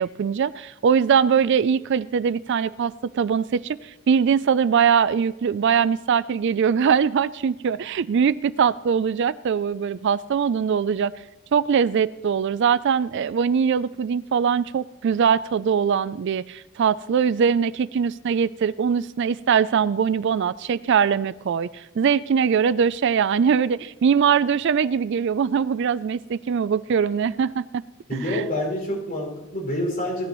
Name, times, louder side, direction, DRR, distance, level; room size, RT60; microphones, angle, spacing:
voice 1, 0.0-11.1 11.5-27.8 28.1-28.4, right 7 dB, 55° right, 17 dB, 0.3 m, -22 dB
voice 2, 28.1-30.3, left 1 dB, 45° left, -2 dB, 5.5 m, -27 dB
18.0 x 13.0 x 3.1 m, 0.96 s
head